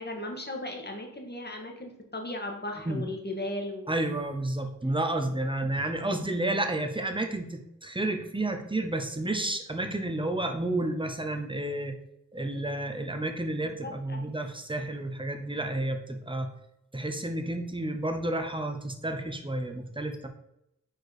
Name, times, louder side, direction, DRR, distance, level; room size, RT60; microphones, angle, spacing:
voice 1, 0.0-3.8 13.6-14.3, left 1 dB, 30° left, 2 dB, 1.5 m, -37 dB
voice 2, 3.9-11.9 12.3-16.5 16.9-20.3, right 1 dB, 15° right, 6 dB, 0.9 m, -31 dB
4.6 x 4.6 x 4.8 m, 0.82 s
wide cardioid pair, 60°, 32 cm